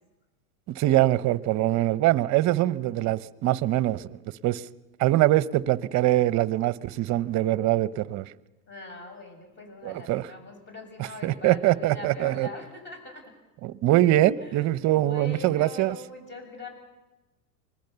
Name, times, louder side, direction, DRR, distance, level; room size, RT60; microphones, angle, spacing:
voice 1, 0.7-4.0 4.4-4.6 5.0-8.3 9.8-10.3 11.0-12.5 13.6-16.0, right 15 dB, 40° right, 0.8 m, -23 dB
voice 2, 8.7-13.2 14.4-16.7, left 3 dB, 25° left, 7.1 m, -42 dB
25.5 x 20.0 x 6.9 m
hypercardioid pair, 115°, 45 cm